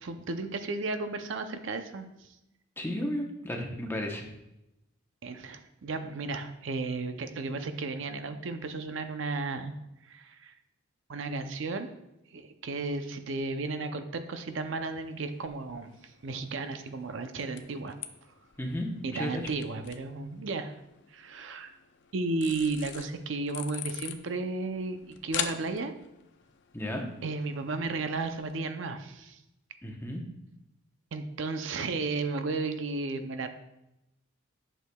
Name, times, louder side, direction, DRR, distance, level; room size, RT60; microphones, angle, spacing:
voice 1, 0.0-2.3 5.2-9.7 10.0-10.5 11.1-11.9 12.3-18.0 19.0-20.7 21.1-21.7 22.1-25.9 27.2-29.4 31.1-33.5, right 3 dB, 60° right, 8 dB, 0.5 m, -34 dB
voice 2, 2.8-4.3 18.6-19.5 26.7-27.0 29.8-30.2, left 1 dB, 10° left, 1 dB, 0.8 m, -34 dB
sound 1, 14.5-28.6, left 10 dB, 55° left, 0.5 m, -44 dB
11.0 x 6.5 x 2.3 m, 0.89 s
head